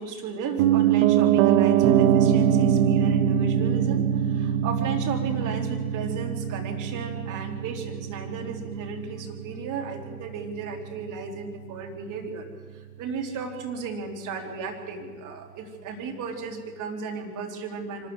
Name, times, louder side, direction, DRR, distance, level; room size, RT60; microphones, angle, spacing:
voice 1, 0.0-12.5 12.7-18.1, right 4 dB, 40° right, 3 dB, 3.7 m, -35 dB
Piano, 0.6-10.6 10.9-11.0, right 9 dB, 60° right, 1.1 m, -23 dB
24.5 x 13.5 x 8.1 m, 1.5 s
hypercardioid pair, 100°, 46 cm